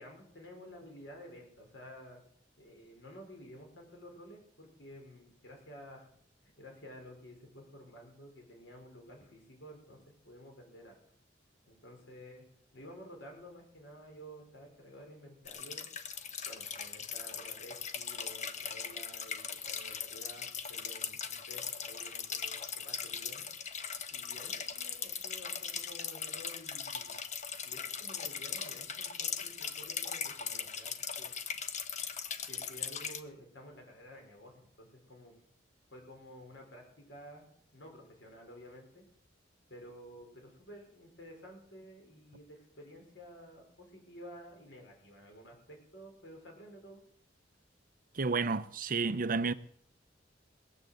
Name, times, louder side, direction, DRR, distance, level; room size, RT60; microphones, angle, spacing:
voice 1, 0.0-2.2 2.6-6.1 6.6-10.9 11.7-12.4 12.7-15.9 16.5-23.5 24.1-27.2 27.6-31.3 32.5-35.4 35.9-37.5 37.7-39.0 39.7-47.0, equal, 75° left, 5.3 m, -52 dB
sound 1, 15.4-33.2, left 7 dB, 40° left, 1.0 m, -39 dB
voice 2, 48.1-49.5, right 4 dB, 50° right, 0.7 m, -31 dB
19.5 x 8.2 x 7.8 m
head